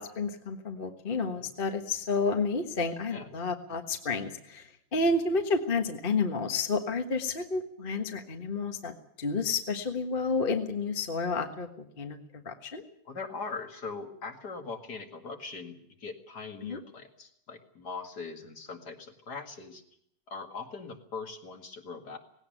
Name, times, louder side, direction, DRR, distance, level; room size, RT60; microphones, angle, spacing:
voice 1, 0.0-8.9 9.2-12.8 16.6-16.8, left 3 dB, 30° left, 5 dB, 1.4 m, -30 dB
voice 2, 1.1-1.5 3.1-3.3 13.0-19.8 20.3-22.2, left 4 dB, 50° left, 5 dB, 2.6 m, -41 dB
18.5 x 17.0 x 9.1 m, 0.69 s
omnidirectional pair, 2.2 m